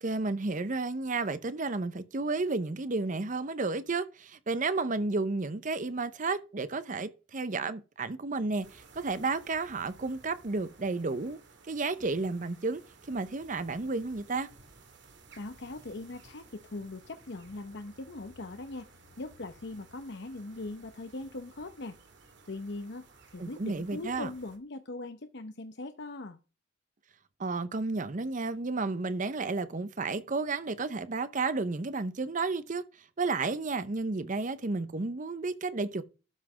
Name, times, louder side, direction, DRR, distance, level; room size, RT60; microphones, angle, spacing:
voice 1, 0.0-11.4 11.7-12.8 13.1-14.5 23.4-24.3 27.4-32.8 33.2-36.0, right 3 dB, 40° right, 0.7 m, -32 dB
sound 1, 8.6-24.6, right 3 dB, 60° right, 2.4 m, -57 dB
voice 2, 15.4-18.9 19.2-22.0 22.5-23.1 23.3-26.4, left 2 dB, 60° left, 0.8 m, -40 dB
12.5 x 5.9 x 4.8 m
head